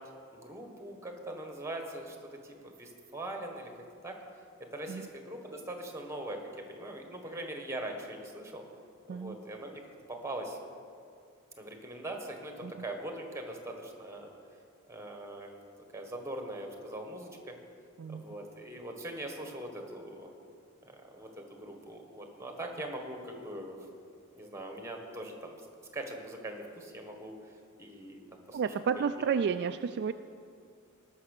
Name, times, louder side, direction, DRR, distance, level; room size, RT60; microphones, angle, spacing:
voice 1, 0.3-3.7 4.0-4.2 4.7-6.4 6.7-8.6 9.1-9.8 10.1-10.6 11.6-14.3 14.9-15.6 15.9-17.3 18.1-20.3 20.9-23.8 24.3-25.6 25.9-27.4 27.8-28.6 28.9-29.1, right 1 dB, 15° right, 3 dB, 1.5 m, -41 dB
voice 2, 28.5-30.1, right 6 dB, 55° right, 9 dB, 0.3 m, -31 dB
18.5 x 6.3 x 6.7 m, 2.3 s
head